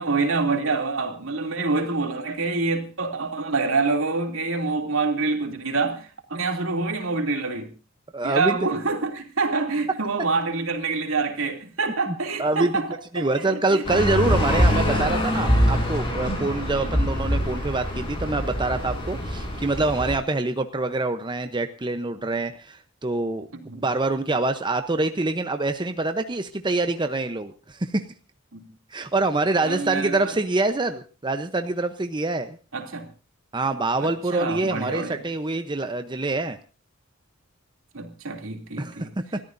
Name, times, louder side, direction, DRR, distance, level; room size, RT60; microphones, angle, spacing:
voice 1, 0.0-7.7 8.2-12.9 13.1-13.8 16.7-16.9 23.5-23.8 28.5-28.6 29.6-30.4 32.7-33.1 34.0-35.2 37.9-39.1, right 3 dB, 75° right, 2.8 m, -26 dB
voice 2, 8.1-8.8 12.1-12.8 13.1-23.5 23.8-28.0 28.9-32.6 33.5-36.6 38.8-39.4, right 2 dB, 20° right, 0.8 m, -25 dB
sound 1, 13.8-20.1, equal, 25° left, 5.8 m, -24 dB
29.0 x 13.5 x 2.6 m
head